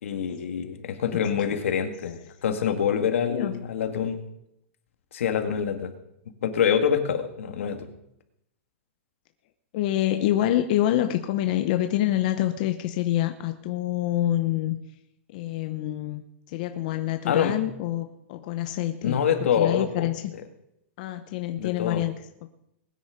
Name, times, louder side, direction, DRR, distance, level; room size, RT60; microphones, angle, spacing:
voice 1, 0.0-4.2 5.1-5.9 6.4-7.9 17.3-17.6 19.0-20.1 21.6-22.0, left 8 dB, 80° left, 6 dB, 2.1 m, -25 dB
voice 2, 3.0-3.6 9.7-14.8 15.3-20.3 21.0-22.1 22.4-22.5, left 13 dB, 40° left, 7 dB, 0.8 m, -27 dB
20.5 x 9.8 x 5.1 m, 0.80 s
supercardioid pair, 175°, 7 cm